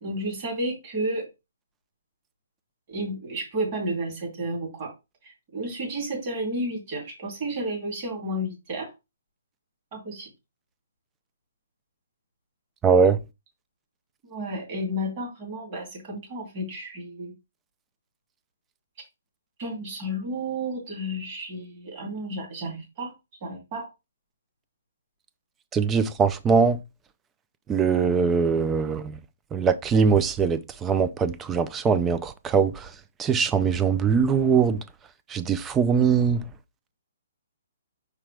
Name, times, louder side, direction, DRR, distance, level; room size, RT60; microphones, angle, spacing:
voice 1, 0.0-1.3 2.9-4.9 5.2-8.9 9.9-10.3 14.2-17.3 19.6-23.1 23.4-23.9, right 1 dB, 30° right, 2.6 m, -32 dB
voice 2, 12.8-13.2 25.7-26.8 27.7-29.2 29.5-32.9 33.2-34.8 35.3-36.4, right 6 dB, 10° right, 0.4 m, -22 dB
6.0 x 4.8 x 3.3 m
hypercardioid pair, 170°, 0 cm